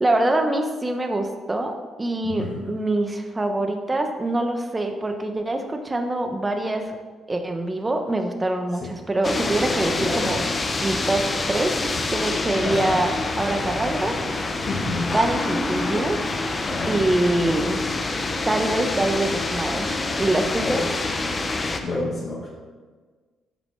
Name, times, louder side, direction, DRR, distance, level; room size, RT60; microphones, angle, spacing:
voice 1, 0.0-7.0 7.3-10.4 10.8-11.2 11.5-11.7 12.1-14.2 15.1-16.2 16.9-17.8 18.5-19.9 20.2-20.8, right 1 dB, 20° right, 5 dB, 1.0 m, -24 dB
voice 2, 2.2-2.6 10.0-10.3 12.6-12.9 14.6-15.1 16.6-16.9 20.6-20.8 21.8-22.5, left 2 dB, 50° left, -4 dB, 1.7 m, -29 dB
sound 1, 9.2-21.8, left 2 dB, 30° left, 0.8 m, -26 dB
13.0 x 5.0 x 3.3 m, 1.4 s
cardioid pair, 90°, 0 cm